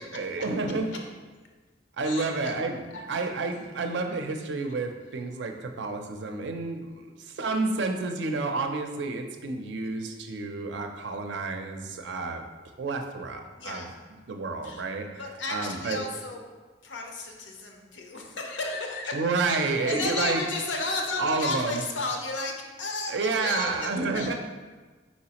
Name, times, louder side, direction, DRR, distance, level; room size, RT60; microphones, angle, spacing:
voice 1, 0.1-0.9 2.0-12.4 12.8-13.9 14.3-15.1 15.5-16.0 19.1-20.4 21.2-21.8 23.1-24.3, right 3 dB, 75° right, 5 dB, 0.4 m, -30 dB
voice 2, 2.0-2.5 2.9-3.0 13.6-13.9 14.6-14.8 15.2-16.4 16.8-19.1 19.5-22.5 22.8-24.3, left 3 dB, 90° left, 2 dB, 0.7 m, -33 dB
4.3 x 4.0 x 2.9 m, 1.3 s
head